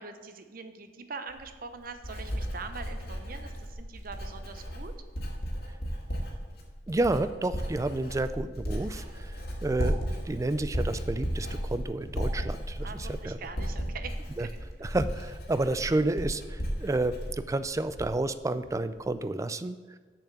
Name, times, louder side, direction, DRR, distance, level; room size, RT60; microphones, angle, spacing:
voice 1, 0.0-4.9 12.8-14.5, right 4 dB, 55° right, 8 dB, 0.7 m, -43 dB
Writing, 1.3-18.3 18.6-19.1, equal, 65° left, 1.9 m, -35 dB
voice 2, 6.9-13.4 14.4-14.5 14.8-19.8, right 2 dB, 20° right, 12 dB, 0.3 m, -30 dB
7.0 x 5.8 x 7.4 m, 1.4 s
head